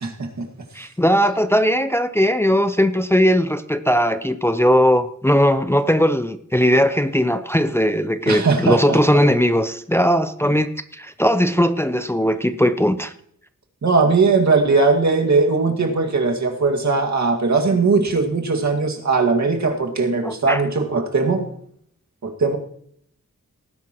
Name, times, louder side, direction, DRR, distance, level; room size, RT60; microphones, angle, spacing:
voice 1, 0.0-0.5 8.3-9.0 10.4-10.5 13.8-21.5 22.2-22.6, right 4 dB, 70° right, 2.1 m, -19 dB
voice 2, 0.7-13.1 20.2-20.6, equal, 10° left, 0.6 m, -18 dB
18.5 x 10.5 x 3.0 m
wide cardioid pair, 90°, 29 cm